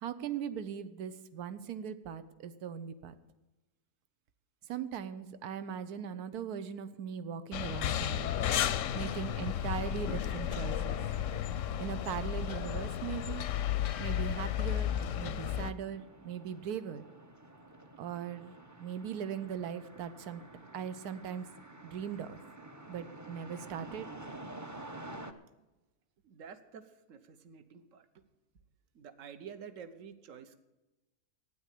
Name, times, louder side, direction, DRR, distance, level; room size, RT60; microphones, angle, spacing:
voice 1, 0.0-3.1 4.7-8.3 8.9-11.0 11.8-13.4 14.0-14.9 15.2-17.0 18.0-18.5 18.8-20.4 20.7-21.5 21.8-22.4 22.9-24.1, right 8 dB, 80° right, 13 dB, 1.3 m, -39 dB
sound 1, 7.5-15.7, left 10 dB, 65° left, 0.9 m, -33 dB
sound 2, 8.8-25.3, right 2 dB, 15° right, 0.6 m, -51 dB
voice 2, 26.2-28.1 28.9-30.6, right 7 dB, 60° right, 10 dB, 1.3 m, -49 dB
12.5 x 9.6 x 8.3 m, 1.1 s
omnidirectional pair, 1.6 m